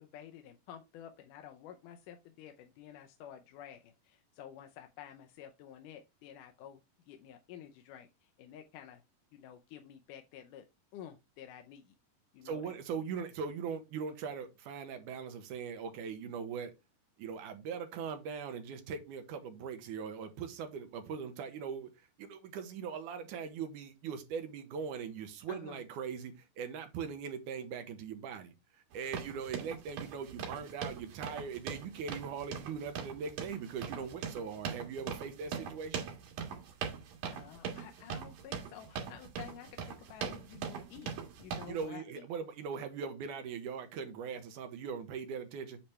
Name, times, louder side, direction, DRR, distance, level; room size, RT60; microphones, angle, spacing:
voice 1, 0.0-9.0 9.3-10.6 10.9-11.9 12.3-12.8 25.5-25.8 37.3-42.3, left 9 dB, 80° left, 2.2 m, -51 dB
voice 2, 12.4-16.7 17.2-21.9 22.2-28.5 28.9-36.0 41.7-45.8, right 6 dB, 75° right, 2.3 m, -40 dB
sound 1, 28.9-41.9, right 7 dB, 90° right, 3.4 m, -41 dB
8.8 x 3.3 x 4.2 m
omnidirectional pair, 3.8 m